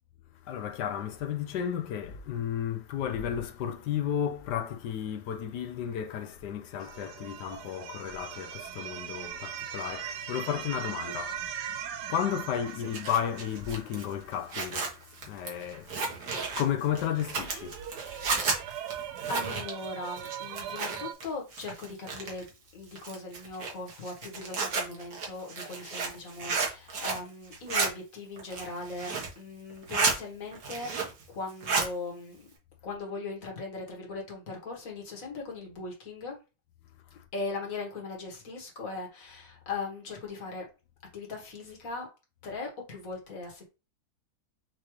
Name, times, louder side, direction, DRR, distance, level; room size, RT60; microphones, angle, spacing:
voice 1, 0.4-18.6 37.1-37.2, left 9 dB, 70° left, 1.1 m, -33 dB
sound 1, 6.8-14.7 17.1-21.1, right 9 dB, 75° right, 0.9 m, -40 dB
Zipper (clothing), 12.7-21.2 21.5-22.5 23.0-27.3 27.5-27.9 28.4-29.4 29.7-30.2 30.5-31.2 31.5-31.9, right 4 dB, 50° right, 1.5 m, -32 dB
voice 2, 18.6-18.9 19.3-31.0 31.3-32.5 32.8-36.4 37.3-40.7 41.1-42.1 42.4-43.7, left 3 dB, 45° left, 1.6 m, -39 dB
6.0 x 2.6 x 3.1 m
omnidirectional pair, 2.2 m